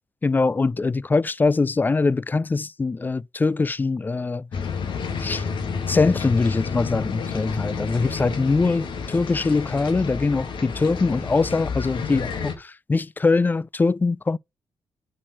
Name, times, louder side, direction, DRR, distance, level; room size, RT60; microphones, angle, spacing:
voice 1, 0.2-4.5 5.2-5.4 5.9-14.4, left 3 dB, 20° left, 0.3 m, -22 dB
sound 1, 4.5-12.5, left 5 dB, 65° left, 2.0 m, -30 dB
5.6 x 4.5 x 6.0 m
supercardioid pair, 60°, 9 cm